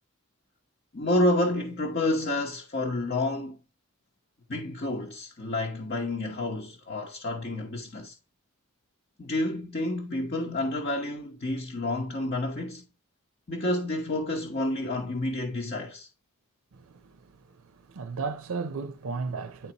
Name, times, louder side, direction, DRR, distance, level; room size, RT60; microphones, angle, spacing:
voice 1, 0.9-3.6 4.5-8.1 9.2-12.8 13.5-16.1, left 1 dB, 45° left, 1.0 m, -29 dB
voice 2, 16.7-17.2 17.9-19.7, right 4 dB, 70° right, 0.5 m, -34 dB
10.0 x 4.0 x 2.8 m
head